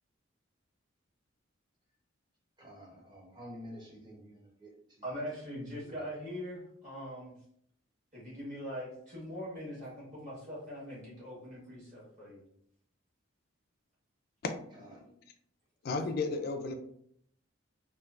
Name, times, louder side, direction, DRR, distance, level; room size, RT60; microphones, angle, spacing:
voice 1, 2.6-4.7 5.8-6.1 14.8-15.0, equal, 20° right, -4 dB, 0.8 m, -50 dB
voice 2, 5.0-7.3 8.1-12.4, equal, 35° right, -8 dB, 1.3 m, -42 dB
voice 3, 14.4-14.9 15.8-16.8, left 3 dB, 50° left, 5 dB, 0.3 m, -34 dB
3.1 x 2.4 x 2.4 m, 0.68 s
head